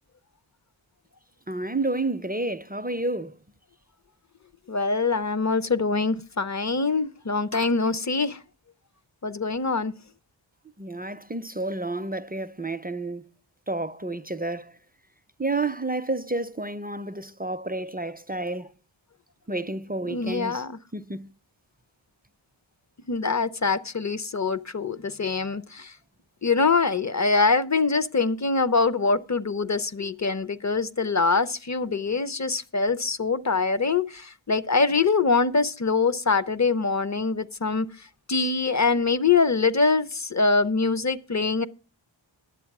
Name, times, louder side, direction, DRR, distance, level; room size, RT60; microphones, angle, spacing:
voice 1, 1.5-3.3 10.8-13.2 13.7-14.7 15.4-18.7 19.5-20.6 20.9-21.3, right 2 dB, 20° right, 0.5 m, -30 dB
voice 2, 4.7-8.4 9.2-9.9 20.1-20.8 23.1-25.9 26.4-37.9 38.3-41.7, left 4 dB, 35° left, 0.6 m, -24 dB
10.5 x 7.9 x 5.9 m
wide cardioid pair, 50°, 47 cm